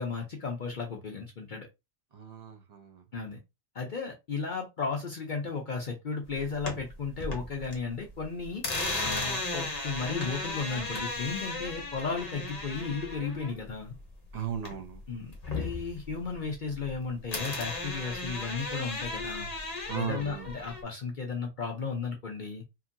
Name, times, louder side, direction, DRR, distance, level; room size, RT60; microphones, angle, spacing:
voice 1, 0.0-1.7 3.1-3.4 3.7-8.6 9.0-13.9 15.1-19.5 19.9-22.6, left 4 dB, 55° left, 0.5 m, -34 dB
voice 2, 2.1-3.0 14.3-15.0 19.9-20.5, right 9 dB, 40° right, 0.6 m, -36 dB
sound 1, 6.3-7.8 8.1-15.0 15.3-17.0 17.3-20.8, left 2 dB, 35° left, 0.9 m, -35 dB
2.9 x 2.6 x 2.5 m
omnidirectional pair, 1.4 m